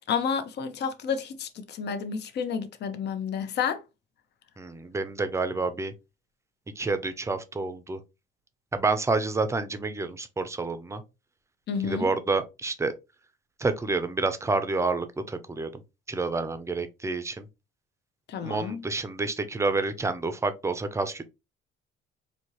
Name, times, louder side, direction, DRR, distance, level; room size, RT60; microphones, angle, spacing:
voice 1, 0.1-3.8 11.7-12.1 18.3-18.8, left 6 dB, 55° left, 0.8 m, -30 dB
voice 2, 4.6-5.9 6.8-8.0 8.7-11.0 11.8-12.9 13.6-15.8 16.1-17.5 18.4-21.3, right 3 dB, 15° right, 0.6 m, -29 dB
4.4 x 2.8 x 3.0 m
cardioid pair, 125°, 21 cm